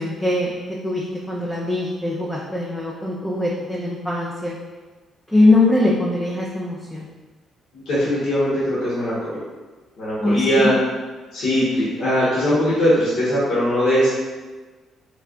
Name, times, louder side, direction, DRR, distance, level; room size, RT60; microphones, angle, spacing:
voice 1, 0.0-4.5 5.3-7.1 10.2-10.8, left 2 dB, ahead, -5 dB, 0.5 m, -21 dB
voice 2, 7.7-9.4 10.0-10.7 11.3-14.1, equal, 70° left, -10 dB, 1.2 m, -20 dB
3.3 x 3.1 x 2.4 m, 1.3 s
cardioid pair, 90°, 0 cm